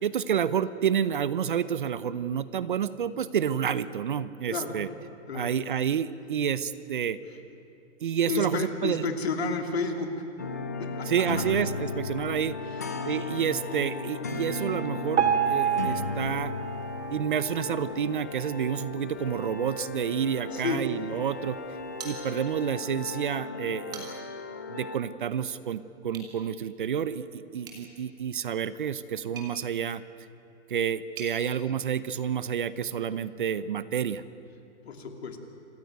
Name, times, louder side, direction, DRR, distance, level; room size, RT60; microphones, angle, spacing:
voice 1, 0.0-4.9 5.3-7.2 8.0-9.0 11.1-12.6 13.0-16.5 17.1-21.6 22.0-24.2 24.7-30.0 30.7-34.2, right 8 dB, 45° right, 15 dB, 0.7 m, -29 dB
voice 2, 8.3-10.3 10.8-11.4 20.5-20.8 34.8-35.4, left 4 dB, 60° left, 5 dB, 3.0 m, -31 dB
sound 1, 10.4-25.0, left 4 dB, 15° left, 0.5 m, -36 dB
Piano, 15.2-18.3 18.8-18.9 19.2-19.3 20.1-20.2 20.7-20.8, right 9 dB, 75° right, 3.0 m, -29 dB
sound 2, 22.0-22.7 23.1-23.2 23.7-24.4 26.1-26.3 27.6-31.4, right 4 dB, 10° right, 2.1 m, -46 dB
27.5 x 15.0 x 9.3 m, 2.8 s
hypercardioid pair, 175°, 35 cm